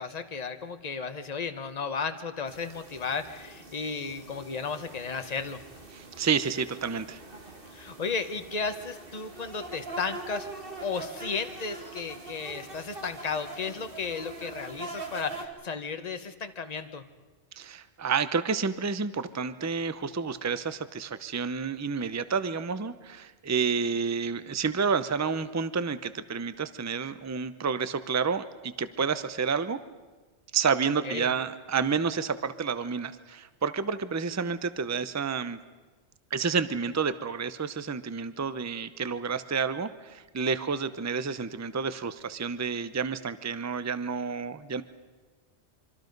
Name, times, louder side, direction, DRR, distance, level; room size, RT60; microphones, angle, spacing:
voice 1, 0.0-5.6 7.7-10.5 10.8-17.0 31.0-31.3, left 5 dB, 40° left, 8 dB, 1.1 m, -34 dB
sound 1, 2.5-15.5, right 3 dB, 55° right, 2.4 m, -43 dB
voice 2, 5.9-7.2 17.6-29.8 30.5-35.6 36.3-44.8, right 5 dB, 20° right, 13 dB, 0.6 m, -30 dB
25.5 x 24.5 x 5.3 m, 1.3 s
omnidirectional pair, 1.1 m